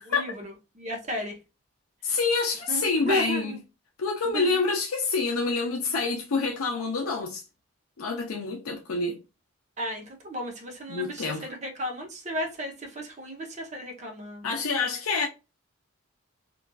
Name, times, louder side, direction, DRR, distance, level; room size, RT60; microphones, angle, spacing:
voice 1, 0.0-1.3 2.7-3.6 4.3-4.6 9.8-14.5, equal, 35° right, 0.7 m, -34 dB
voice 2, 2.0-3.6 4.0-7.4 8.0-9.2 10.9-11.5 14.4-15.3, left 4 dB, 80° left, 0.5 m, -27 dB
3.0 x 2.4 x 2.3 m
head